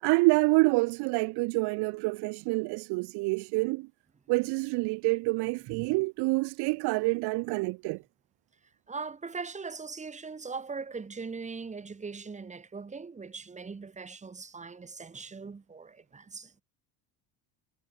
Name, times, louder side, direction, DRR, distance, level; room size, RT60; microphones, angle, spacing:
voice 1, 0.0-3.9 4.3-8.0, right 26 dB, 65° right, 1.0 m, -27 dB
voice 2, 8.9-16.6, right 4 dB, 15° right, 4.1 m, -40 dB
cardioid pair, 145°, 42 cm